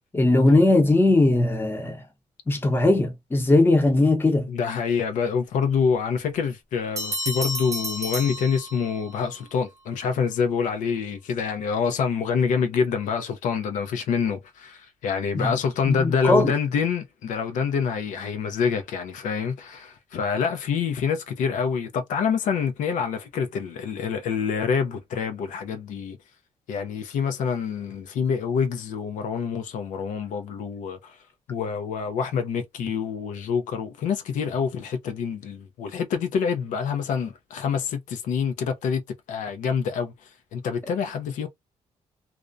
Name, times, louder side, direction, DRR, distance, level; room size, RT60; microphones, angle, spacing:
voice 1, 0.1-2.0 2.5-4.5 15.3-15.5 15.9-16.5, left 2 dB, 15° left, 0.7 m, -19 dB
voice 2, 4.5-26.2 26.7-31.2 31.5-39.0 39.3-40.1 40.5-41.5, left 6 dB, 90° left, 0.5 m, -26 dB
Bell, 7.0-9.2, equal, 25° right, 0.7 m, -31 dB
2.3 x 2.1 x 2.5 m
cardioid pair, 135°, 13 cm